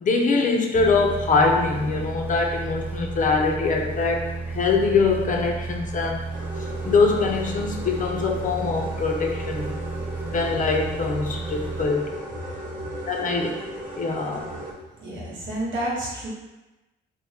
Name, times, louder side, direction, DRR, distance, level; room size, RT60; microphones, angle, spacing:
voice 1, 0.0-6.2 6.9-9.7 10.3-12.0 13.1-13.6 14.0-14.5, left 4 dB, 40° left, 1 dB, 0.5 m, -23 dB
sound 1, 0.7-12.4, right 3 dB, 10° right, 0.4 m, -33 dB
sound 2, 6.3-14.7, right 1 dB, 40° right, 0.8 m, -37 dB
voice 2, 15.0-16.3, right 1 dB, 70° right, -5 dB, 1.1 m, -30 dB
2.8 x 2.1 x 3.3 m, 1.0 s
cardioid pair, 90°, 20 cm